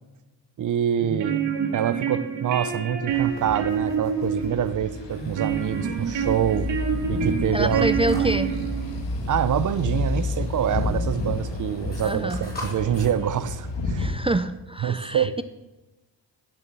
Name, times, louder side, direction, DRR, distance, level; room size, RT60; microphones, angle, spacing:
voice 1, 0.6-1.5 1.7-6.7 7.1-7.9 8.1-8.3 9.3-14.1 14.8-15.3, right 9 dB, 45° right, 0.7 m, -26 dB
sound 1, 0.9-9.0, right 7 dB, 85° right, 2.5 m, -28 dB
sound 2, 3.1-14.2, left 2 dB, 75° left, 2.0 m, -30 dB
sound 3, 5.1-13.1, left 1 dB, 20° left, 4.8 m, -45 dB
voice 2, 7.5-8.5 12.0-12.5 14.0-15.4, right 2 dB, 15° right, 0.4 m, -27 dB
15.5 x 7.1 x 6.9 m
cardioid pair, 125°, 43 cm